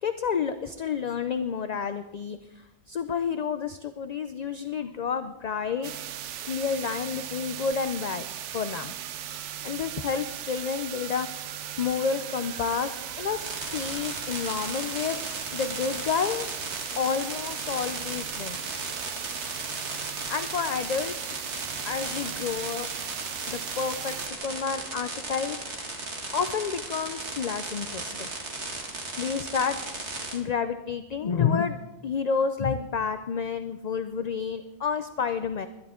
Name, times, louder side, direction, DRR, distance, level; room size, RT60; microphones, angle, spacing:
voice 1, 0.0-5.9 6.4-8.2 8.5-8.9 9.6-15.2 15.5-16.5 17.0-18.8 20.0-21.2 21.8-22.9 23.5-28.3 28.7-35.7, left 6 dB, 50° left, 10 dB, 0.5 m, -30 dB
sound 1, 5.4-24.2, equal, 5° left, 3.1 m, -53 dB
sound 2, 5.8-24.3, right 11 dB, 90° right, 1.0 m, -38 dB
sound 3, 13.4-30.4, right 2 dB, 70° right, 2.3 m, -36 dB
21.0 x 11.5 x 3.7 m, 1.0 s
omnidirectional pair, 1.2 m